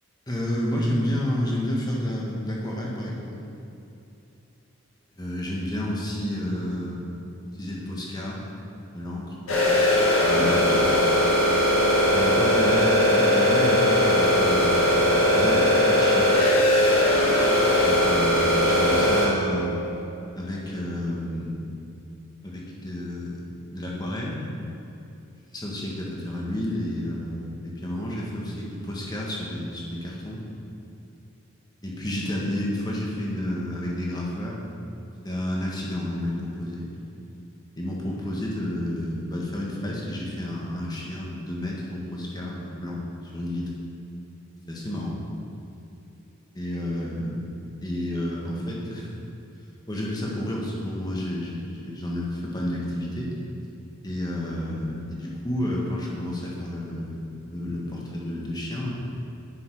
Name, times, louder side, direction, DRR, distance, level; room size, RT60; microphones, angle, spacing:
voice 1, 0.3-3.3 5.2-7.0 7.6-8.4 8.9-9.7 10.2-11.0 12.1-16.3 17.8-19.8 20.3-21.6 22.4-23.4 23.7-24.4 25.5-30.4 31.8-34.6 35.2-36.9 37.8-43.7 44.7-45.2 46.5-47.5 47.8-49.1 49.9-53.3 54.0-57.2 57.5-58.9, left 1 dB, 20° left, -3 dB, 1.6 m, -30 dB
sound 1, 9.5-19.3, left 1 dB, 85° left, 1.9 m, -20 dB
10.0 x 6.9 x 4.8 m, 2.8 s
head